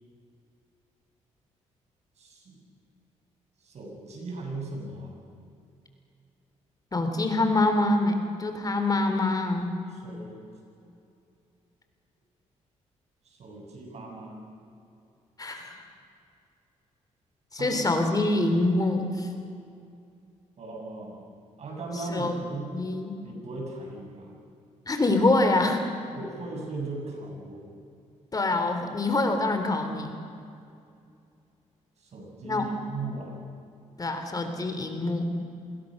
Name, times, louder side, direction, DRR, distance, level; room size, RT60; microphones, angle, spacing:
voice 1, 2.2-2.6 3.6-5.2 9.9-10.4 13.2-14.4 17.5-17.8 20.6-21.2 21.6-22.7 23.2-24.3 26.1-27.6 32.0-33.4, right 3 dB, 60° right, 0 dB, 7.9 m, -38 dB
voice 2, 6.9-9.7 15.4-15.8 17.5-19.3 21.9-22.4 22.7-23.1 24.9-25.8 28.3-30.1 32.4-32.7 34.0-35.3, left 2 dB, 30° left, 6 dB, 3.5 m, -25 dB
27.5 x 21.5 x 6.7 m, 2.5 s
cardioid pair, 80°, 13 cm